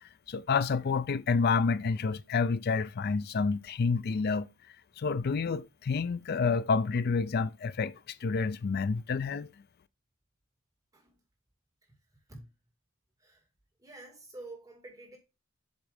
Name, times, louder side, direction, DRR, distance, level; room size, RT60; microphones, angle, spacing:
voice 1, 0.3-4.5 5.0-7.9 8.2-9.5, left 4 dB, 50° left, 0.4 m, -29 dB
voice 2, 13.8-15.2, right 2 dB, 15° right, 2.2 m, -48 dB
7.9 x 3.2 x 5.1 m
head